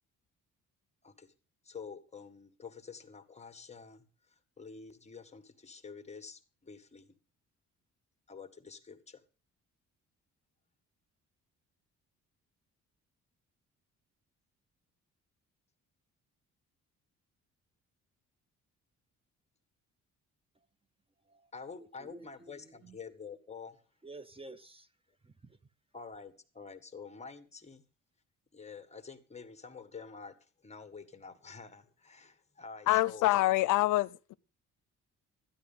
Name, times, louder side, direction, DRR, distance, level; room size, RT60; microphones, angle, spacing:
voice 1, 1.6-7.1 8.3-9.2 21.5-23.8 25.9-27.9 28.5-33.3, left 5 dB, 20° left, 1.7 m, -48 dB
voice 2, 21.2-23.0 24.0-24.9 25.2-25.6, right 2 dB, 20° right, 0.9 m, -52 dB
voice 3, 32.9-34.3, left 17 dB, 85° left, 0.6 m, -26 dB
12.5 x 10.0 x 5.6 m
cardioid pair, 90°, 30 cm